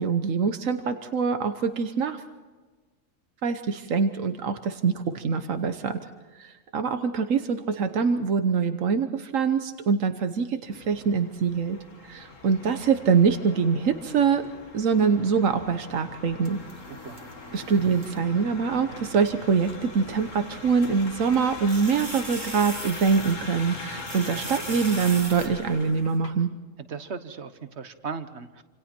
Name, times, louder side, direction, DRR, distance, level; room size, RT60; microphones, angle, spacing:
voice 1, 0.0-2.2 3.4-6.0 6.4-11.8 12.0-14.4 14.7-16.6 17.5-26.5, right 5 dB, 90° right, 8 dB, 1.4 m, -24 dB
sound 1, 10.7-26.3, left 3 dB, 80° left, 2.3 m, -41 dB
sound 2, 16.4-18.2 19.3-19.4 21.3-23.7 24.0-25.5, right 3 dB, 40° right, 1.9 m, -40 dB
voice 2, 26.9-28.6, right 5 dB, 60° right, 10 dB, 1.5 m, -37 dB
27.5 x 27.5 x 4.5 m, 1.3 s
omnidirectional pair, 1.3 m